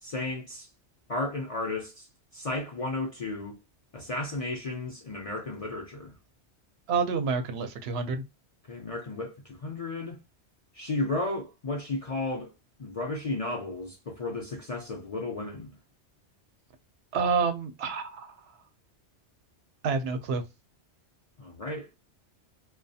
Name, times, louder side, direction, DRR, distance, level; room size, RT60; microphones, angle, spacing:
voice 1, 0.0-0.7 1.1-2.1 2.3-3.6 3.9-6.1 8.7-10.2 10.7-12.5 12.8-15.7 21.4-21.9, left 2 dB, 50° left, 0.4 m, -33 dB
voice 2, 6.9-8.2 17.1-18.4 19.8-20.4, right 5 dB, 70° right, 0.8 m, -28 dB
2.3 x 2.2 x 2.6 m
omnidirectional pair, 1.1 m